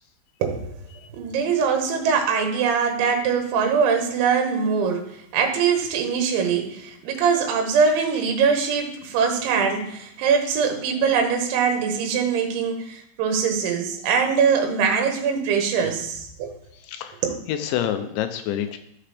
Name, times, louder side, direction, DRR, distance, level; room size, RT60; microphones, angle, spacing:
voice 1, 0.4-0.7 1.1-5.0 5.3-16.5 17.2-17.4, right 6 dB, 85° right, 3 dB, 3.6 m, -22 dB
voice 2, 16.8-17.2 17.5-18.8, left 10 dB, 85° left, 8 dB, 3.0 m, -27 dB
14.0 x 6.0 x 3.4 m, 0.72 s
omnidirectional pair, 5.3 m